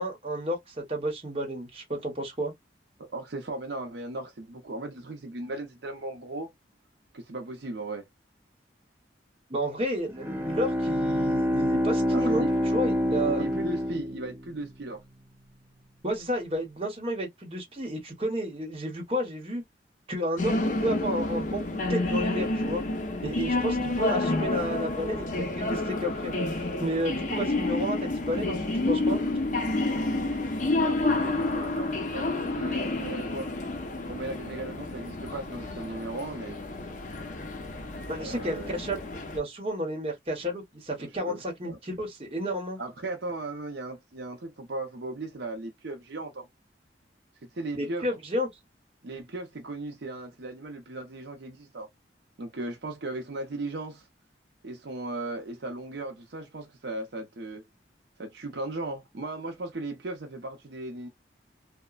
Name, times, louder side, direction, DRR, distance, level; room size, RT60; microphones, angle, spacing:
voice 1, 0.0-2.5 9.5-12.4 12.7-13.4 16.0-19.6 20.1-22.8 23.2-29.2 38.1-39.0 39.3-42.8 47.8-48.5, equal, 30° right, 1.0 m, -31 dB
voice 2, 3.1-6.5 7.1-8.1 12.1-12.5 13.1-15.0 30.8-33.5 34.1-36.6 38.1-38.8 41.0-41.8 42.8-46.5 47.5-48.2 49.0-51.9 52.4-54.1 54.6-57.6 58.2-61.1, right 2 dB, 70° right, 0.6 m, -37 dB
Bowed string instrument, 10.1-14.8, equal, 10° right, 0.3 m, -27 dB
Cafe at Train Station, 20.4-39.4, left 2 dB, 45° left, 0.6 m, -29 dB
3.0 x 2.1 x 2.3 m
head